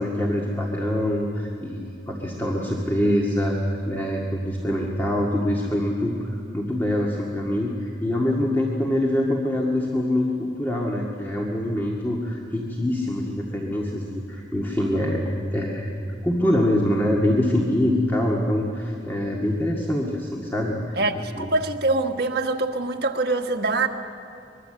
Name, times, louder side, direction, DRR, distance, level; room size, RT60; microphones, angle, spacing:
voice 1, 0.0-15.9 16.2-21.0 21.4-21.5, left 1 dB, 10° left, 1.9 m, -24 dB
voice 2, 21.0-23.9, right 2 dB, 60° right, 1.5 m, -24 dB
24.0 x 22.0 x 7.8 m
head